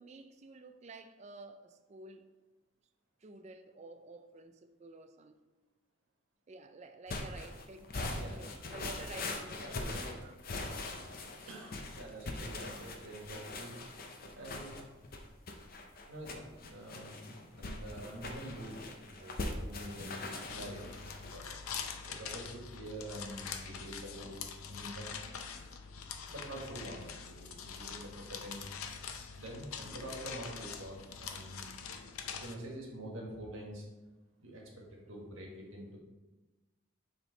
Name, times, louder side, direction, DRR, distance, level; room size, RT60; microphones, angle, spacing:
voice 1, 0.0-2.3 3.2-5.4 6.5-10.3, right 2 dB, 30° right, 0.4 m, -51 dB
sound 1, 7.1-21.4, left 2 dB, 45° left, 0.6 m, -42 dB
voice 2, 9.6-10.1 11.4-13.8 14.3-14.7 16.1-17.2 17.6-20.9 21.3-21.5 22.0-24.4 24.7-25.1 26.3-28.6 29.4-31.6 32.4-33.9 34.4-36.0, right 1 dB, 70° right, 1.6 m, -46 dB
sound 2, 20.5-32.5, left 6 dB, 85° left, 0.5 m, -44 dB
7.2 x 3.7 x 3.9 m
head